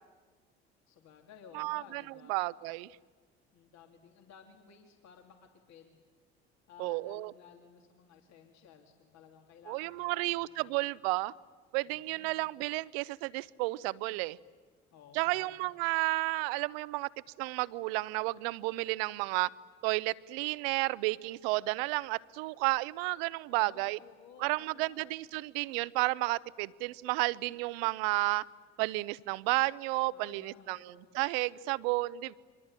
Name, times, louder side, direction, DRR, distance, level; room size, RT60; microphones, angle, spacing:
voice 1, 0.9-2.4 3.5-6.0 6.7-10.7 11.9-12.5 14.9-15.7 23.5-25.1 30.1-31.2, left 7 dB, 60° left, 4 dB, 3.0 m, -56 dB
voice 2, 1.5-2.0 2.3-3.0 6.8-7.3 9.7-11.3 11.7-14.4 15.1-17.1 17.4-19.5 19.8-24.0 24.4-28.4 28.8-32.3, right 22 dB, 70° right, 21 dB, 0.8 m, -32 dB
28.0 x 23.5 x 8.9 m, 1.5 s
hypercardioid pair, 60°, 31 cm